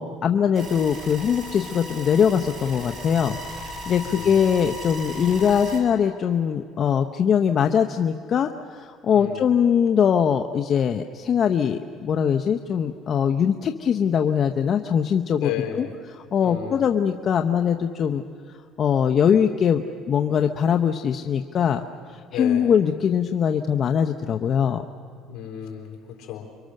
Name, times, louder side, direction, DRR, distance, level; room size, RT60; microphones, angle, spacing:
voice 1, 0.0-15.5 15.8-15.9 16.3-18.2 18.8-19.8 20.1-21.8 22.1-24.8, left 7 dB, 45° left, 5 dB, 0.8 m, -22 dB
sound 1, 0.5-5.8, equal, 45° right, 5.4 m, -37 dB
voice 2, 4.0-4.5 9.1-9.5 15.4-16.0 16.4-17.0 22.3-22.7 25.3-26.5, left 10 dB, 70° left, 3 dB, 4.1 m, -34 dB
28.5 x 24.0 x 6.6 m, 2.2 s
cardioid pair, 115°, 0 cm